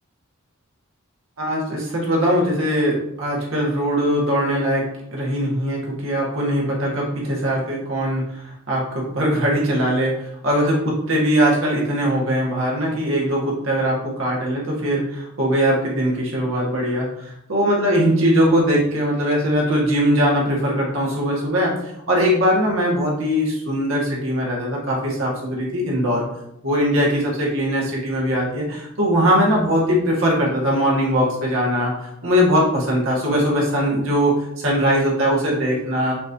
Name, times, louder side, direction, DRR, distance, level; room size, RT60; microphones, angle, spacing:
voice 1, 1.4-10.2 10.4-21.8 22.1-26.2 26.6-36.1, equal, 75° right, -3 dB, 1.6 m, -21 dB
6.0 x 3.1 x 2.7 m, 0.78 s
head